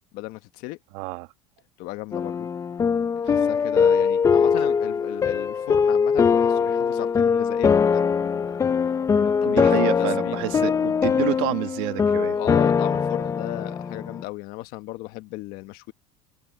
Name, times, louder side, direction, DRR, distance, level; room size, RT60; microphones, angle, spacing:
voice 1, 0.1-0.8 1.8-2.5 3.1-8.6 9.1-10.7 12.3-15.9, left 20 dB, 60° left, 1.3 m, -36 dB
voice 2, 0.9-1.3 3.3-3.4 4.6-4.7 8.9-9.0 9.4-12.4, right 22 dB, 70° right, 1.7 m, -29 dB
sound 1, 2.1-14.2, left 6 dB, 20° left, 0.5 m, -22 dB
supercardioid pair, 135°, 17 cm